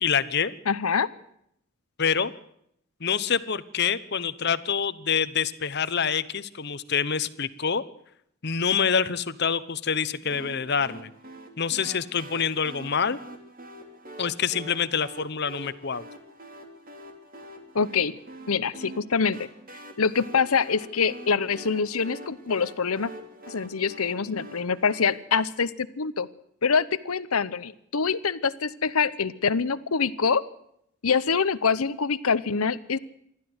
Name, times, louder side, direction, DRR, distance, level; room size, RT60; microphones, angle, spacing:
voice 1, 0.0-0.5 2.0-2.3 3.0-7.8 8.4-11.1 11.6-13.2 14.2-16.1, left 6 dB, 50° left, 16 dB, 0.9 m, -26 dB
voice 2, 0.7-1.1 17.7-18.1 18.5-19.5 20.0-23.1 23.5-26.3 26.6-30.4 31.0-33.0, left 5 dB, 90° left, 16 dB, 0.9 m, -25 dB
sound 1, 10.3-25.1, right 1 dB, 40° right, 3.1 m, -45 dB
27.0 x 12.5 x 8.0 m, 0.73 s
head